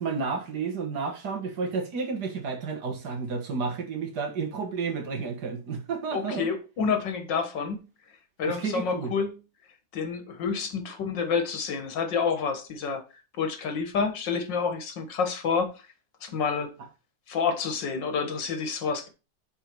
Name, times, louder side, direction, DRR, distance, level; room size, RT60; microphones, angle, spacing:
voice 1, 0.0-6.5 8.5-9.1, right 5 dB, 65° right, 2.0 m, -31 dB
voice 2, 6.1-7.9 8.4-9.4 9.9-13.0 13.4-15.7 16.2-16.7 17.3-19.1, left 5 dB, 80° left, 2.1 m, -28 dB
8.8 x 4.5 x 4.6 m
omnidirectional pair, 1.9 m